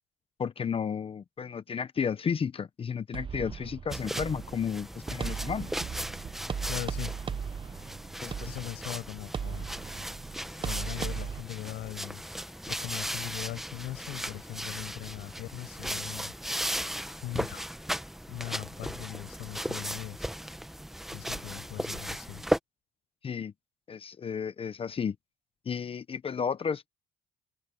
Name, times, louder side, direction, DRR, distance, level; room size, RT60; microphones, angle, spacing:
voice 1, 0.4-5.7 8.2-8.5 23.2-23.5 23.9-25.2 25.7-26.9, left 6 dB, 35° left, 0.9 m, -33 dB
sound 1, 3.1-11.4, right 7 dB, 30° right, 0.7 m, -37 dB
sound 2, 3.9-22.6, equal, ahead, 1.1 m, -37 dB
voice 2, 6.7-7.2 8.5-9.7 10.6-12.2 12.7-16.3 16.7-17.7 18.3-20.3 21.1-22.4, left 17 dB, 85° left, 7.6 m, -40 dB
cardioid pair, 110°, 17 cm